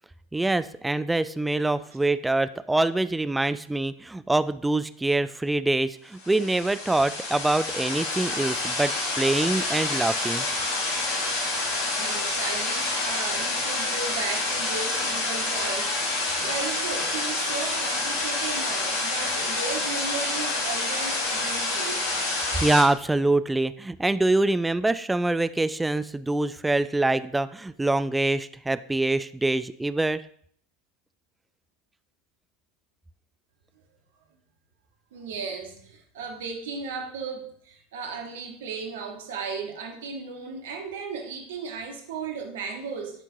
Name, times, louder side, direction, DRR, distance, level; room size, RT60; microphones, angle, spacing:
voice 1, 0.3-10.4 22.6-30.2, right 2 dB, 10° right, 14 dB, 0.3 m, -25 dB
sound 1, 6.2-22.8, left 2 dB, 65° left, 2.7 m, -28 dB
voice 2, 12.0-22.1 35.1-43.2, right 5 dB, 70° right, 3 dB, 1.2 m, -35 dB
10.5 x 4.5 x 2.7 m, 0.62 s
hypercardioid pair, 80°, 0 cm